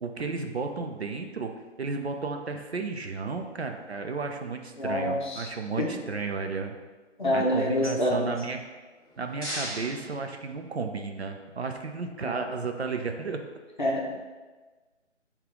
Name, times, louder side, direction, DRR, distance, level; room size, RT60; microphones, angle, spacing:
voice 1, 0.0-1.5 1.8-6.7 7.3-8.7 9.2-13.4, right 4 dB, 60° right, 4 dB, 0.5 m, -33 dB
voice 2, 4.8-5.5 5.8-5.9 7.2-8.3 12.2-12.4 13.8-14.1, left 1 dB, 40° left, -2 dB, 0.7 m, -27 dB
sound 1, 8.8-11.1, equal, 20° right, 1.2 m, -39 dB
5.5 x 2.4 x 3.6 m, 1.3 s
figure-of-eight pair, 150°, 37 cm